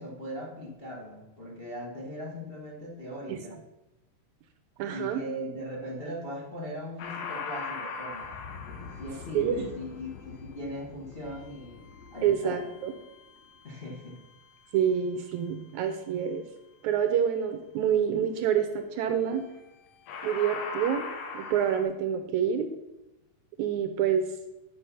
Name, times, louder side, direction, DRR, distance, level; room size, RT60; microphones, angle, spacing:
voice 1, 0.0-3.6 4.9-11.8 12.1-12.6 13.6-14.2, equal, 45° left, -2 dB, 0.7 m, -39 dB
voice 2, 4.8-5.2 9.4-9.7 12.2-12.9 14.7-16.4 16.8-19.4 20.2-21.1 21.3-22.7 23.6-24.3, right 8 dB, 80° right, 7 dB, 1.8 m, -27 dB
sound 1, 7.0-14.2 19.4-19.7 20.1-21.8, left 4 dB, 85° left, 2.7 m, -40 dB
10.5 x 5.2 x 5.5 m, 0.96 s
omnidirectional pair, 3.8 m